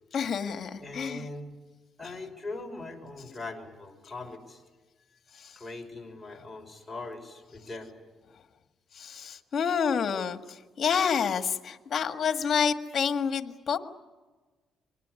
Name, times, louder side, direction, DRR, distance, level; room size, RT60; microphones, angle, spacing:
voice 1, 0.1-1.3 9.0-10.4 10.8-13.8, left 7 dB, 55° left, 8 dB, 1.8 m, -28 dB
voice 2, 0.8-1.5 2.0-4.6 5.6-8.0, left 2 dB, 10° left, 2 dB, 5.6 m, -41 dB
25.5 x 20.0 x 9.7 m, 1.3 s
cardioid pair, 90°, 0 cm